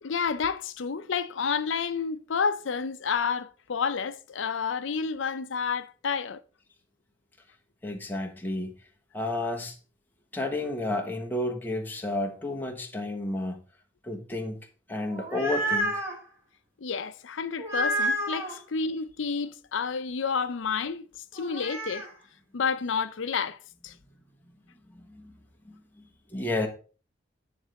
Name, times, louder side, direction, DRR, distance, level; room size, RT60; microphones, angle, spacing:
voice 1, 0.0-6.4 16.8-21.0 21.3-22.1 22.5-24.0, left 5 dB, 85° left, 0.6 m, -30 dB
voice 2, 7.8-8.8 9.1-9.8 10.3-13.6 14.0-14.6 14.9-16.0 24.9-25.4 25.6-26.7, left 2 dB, 10° left, 1.2 m, -31 dB
sound 1, 15.0-16.2 17.6-18.5 21.4-22.1, right 1 dB, 15° right, 2.0 m, -29 dB
10.0 x 3.3 x 6.3 m
head